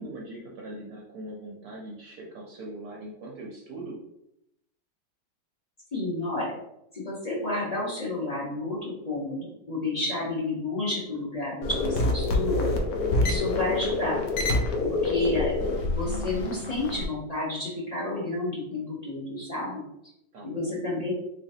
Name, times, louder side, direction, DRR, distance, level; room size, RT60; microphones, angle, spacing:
voice 1, 0.0-4.0 20.3-20.8, right 1 dB, 65° right, -2 dB, 1.0 m, -41 dB
voice 2, 5.9-6.5 6.9-12.7 13.2-14.2 14.8-15.5 15.9-19.7 20.4-21.1, left 2 dB, 30° left, -6 dB, 0.7 m, -30 dB
sound 1, 11.6-17.0, left 2 dB, 75° left, 0.8 m, -27 dB
4.0 x 3.2 x 2.7 m, 0.81 s
omnidirectional pair, 2.2 m